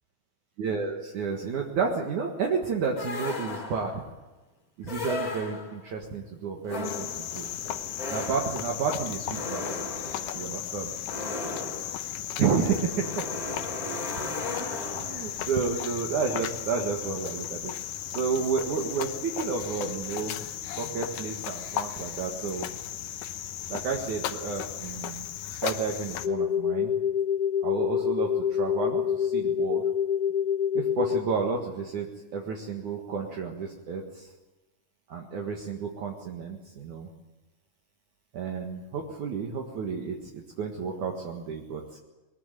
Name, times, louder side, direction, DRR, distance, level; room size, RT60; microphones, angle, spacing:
voice 1, 0.6-4.0 4.8-7.5 8.1-9.8 10.3-10.9 12.4-13.3 14.6-17.7 18.1-20.4 20.8-22.7 23.7-25.3 25.6-26.9 27.6-29.8 30.7-32.1 32.3-34.3 35.1-37.1 38.3-42.0, right 5 dB, 60° right, 1 dB, 2.9 m, -31 dB
sound 1, 3.0-4.0 4.8-5.9 6.6-15.4, left 2 dB, 25° left, 3.1 m, -36 dB
Cricket, 6.8-26.3, left 11 dB, 70° left, 2.5 m, -36 dB
sound 2, 26.2-31.2, left 8 dB, 45° left, 2.7 m, -26 dB
21.5 x 21.0 x 9.1 m, 1.1 s
omnidirectional pair, 4.3 m